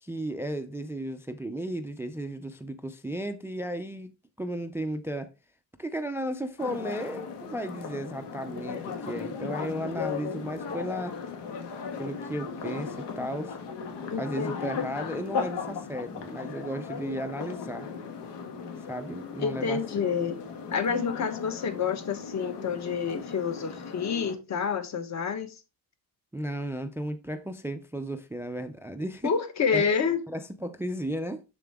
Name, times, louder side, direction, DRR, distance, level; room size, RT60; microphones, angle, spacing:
voice 1, 0.0-5.3 5.8-11.2 12.0-13.6 14.2-17.9 18.9-19.8 26.3-29.3 29.7-29.9 30.3-31.4, right 1 dB, 5° right, 0.3 m, -34 dB
sound 1, 6.6-24.4, left 5 dB, 90° left, 1.8 m, -37 dB
voice 2, 14.1-14.6 19.4-20.4 20.7-25.5 29.2-30.2, left 6 dB, 45° left, 1.2 m, -28 dB
7.2 x 6.7 x 3.5 m
cardioid pair, 175°, 40 cm